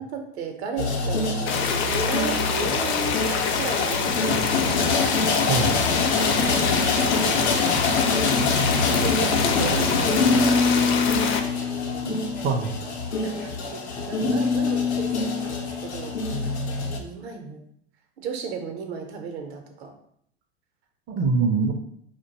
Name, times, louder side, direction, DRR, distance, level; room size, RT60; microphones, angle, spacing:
voice 1, 0.1-4.8 6.5-7.0 7.4-7.9 8.9-11.0 11.9-12.3 13.2-17.6 18.2-19.9, right 5 dB, 70° right, 4 dB, 0.7 m, -35 dB
sound 1, 0.8-17.0, left 3 dB, 90° left, 0.6 m, -24 dB
sound 2, 1.5-11.4, left 6 dB, 40° left, 0.5 m, -26 dB
voice 2, 5.5-5.8 12.0-12.8 21.1-21.7, right 4 dB, 35° right, 3 dB, 0.4 m, -24 dB
2.5 x 2.2 x 3.9 m, 0.69 s
hypercardioid pair, 85°, 33 cm